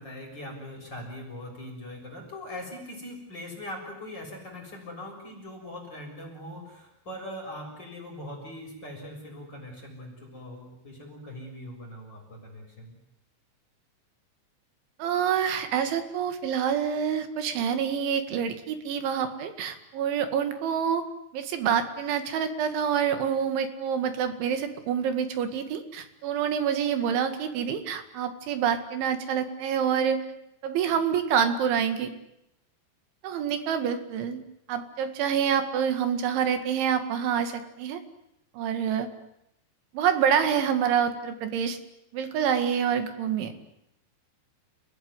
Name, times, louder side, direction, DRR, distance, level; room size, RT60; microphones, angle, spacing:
voice 1, 0.0-13.0, left 1 dB, 20° left, 0 dB, 7.2 m, -41 dB
voice 2, 15.0-21.1 21.3-30.2 30.6-32.1 33.2-34.4 34.7-38.0 38.6-39.1 39.9-41.8 42.1-43.5, right 8 dB, 85° right, 8 dB, 4.5 m, -27 dB
30.0 x 19.0 x 9.7 m, 0.82 s
omnidirectional pair, 5.2 m